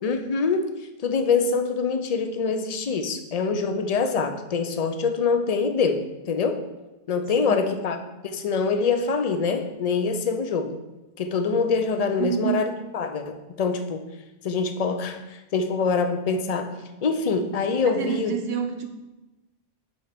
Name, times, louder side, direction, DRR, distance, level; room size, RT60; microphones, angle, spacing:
voice 1, 0.0-0.7 1.0-6.6 7.1-8.0 8.2-10.8 11.2-14.0 14.4-16.7 17.0-18.4, left 5 dB, 45° left, 7 dB, 0.7 m, -25 dB
voice 2, 7.4-7.8 12.2-12.6 17.8-18.9, right 7 dB, 70° right, 6 dB, 1.0 m, -28 dB
8.0 x 4.5 x 5.1 m, 1.0 s
omnidirectional pair, 1.1 m